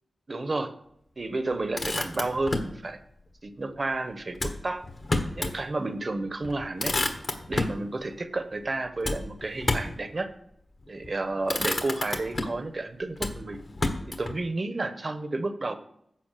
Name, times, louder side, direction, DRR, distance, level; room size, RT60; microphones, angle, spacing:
voice 1, 0.3-0.7 1.2-3.0 3.4-4.8 5.3-7.0 7.5-10.3 10.9-13.6 14.1-15.8, right 2 dB, 40° right, 10 dB, 1.0 m, -31 dB
Motor vehicle (road), 1.5-2.8 4.3-5.6 6.0-6.1 6.4-7.8 9.0-10.0 10.9-11.1 11.4-12.7 13.2-14.4, left 2 dB, 45° left, 1.3 m, -30 dB
10.5 x 6.9 x 6.7 m, 0.76 s
wide cardioid pair, 105°, 0 cm